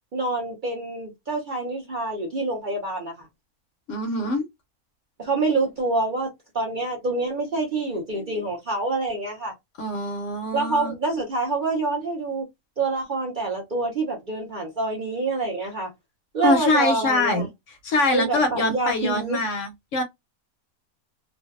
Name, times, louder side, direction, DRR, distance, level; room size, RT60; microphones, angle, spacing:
voice 1, 0.1-3.3 5.2-6.3 6.5-9.5 10.5-12.4 12.8-15.9 16.3-17.5 18.1-19.4, right 3 dB, 55° right, 0.5 m, -26 dB
voice 2, 3.9-4.4 9.8-10.9 16.4-17.5 17.8-20.0, left 2 dB, 70° left, 0.8 m, -24 dB
2.5 x 2.1 x 2.3 m
omnidirectional pair, 1.5 m